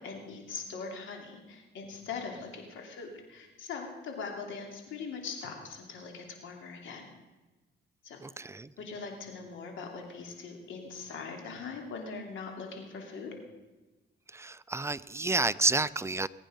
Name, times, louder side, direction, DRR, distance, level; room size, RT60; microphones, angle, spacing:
voice 1, 0.0-7.1 8.0-8.2 8.8-13.4, left 5 dB, 75° left, 3 dB, 2.9 m, -41 dB
voice 2, 8.2-8.7 14.3-16.3, right 3 dB, 15° right, 15 dB, 0.4 m, -30 dB
20.5 x 9.0 x 5.2 m, 1.2 s
cardioid pair, 90°, 20 cm